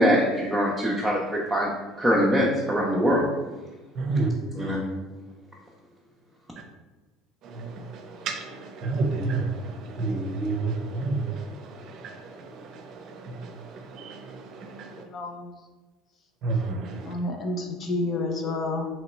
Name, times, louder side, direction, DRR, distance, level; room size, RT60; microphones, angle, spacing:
voice 1, 0.0-1.7 2.0-3.2 4.6-4.8, equal, 5° right, -5 dB, 0.7 m, -22 dB
voice 2, 4.0-4.3 4.6-4.7 7.4-15.0 16.4-17.1, right 3 dB, 55° right, 5 dB, 0.6 m, -31 dB
voice 3, 15.0-15.5 17.0-18.9, left 2 dB, 45° left, 2 dB, 0.7 m, -30 dB
3.0 x 2.8 x 4.4 m, 1.2 s
supercardioid pair, 95°, 0 cm